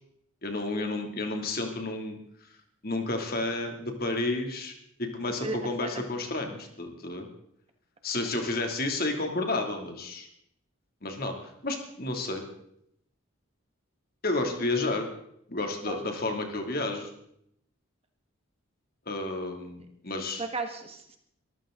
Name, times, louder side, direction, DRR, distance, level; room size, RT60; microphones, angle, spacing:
voice 1, 0.4-2.2 2.8-4.7 5.0-7.3 8.0-10.3 11.0-12.4 14.2-15.1 15.5-17.1 19.1-20.4, left 2 dB, 45° left, 3 dB, 2.7 m, -31 dB
voice 2, 5.4-6.0 14.5-14.6 15.9-16.1 20.4-21.2, right 3 dB, 30° right, 5 dB, 1.6 m, -35 dB
23.5 x 14.5 x 3.9 m, 0.73 s
head